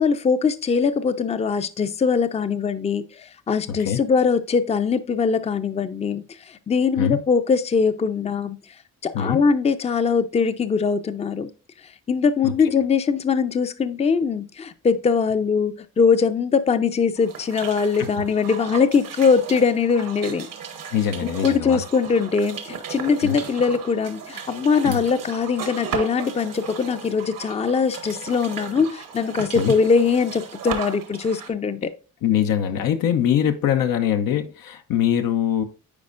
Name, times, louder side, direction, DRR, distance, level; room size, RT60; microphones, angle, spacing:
voice 1, 0.0-8.6 9.0-11.5 12.1-20.5 21.2-31.9, left 5 dB, 20° left, 0.4 m, -21 dB
voice 2, 3.7-4.0 7.0-7.2 9.1-9.4 12.4-12.5 18.0-18.1 20.9-21.8 23.2-23.4 24.8-25.0 29.6-29.7 32.2-35.6, left 9 dB, 90° left, 0.7 m, -22 dB
sound 1, 17.2-31.5, right 7 dB, 80° right, 1.1 m, -36 dB
9.7 x 4.2 x 2.5 m
cardioid pair, 80°, 33 cm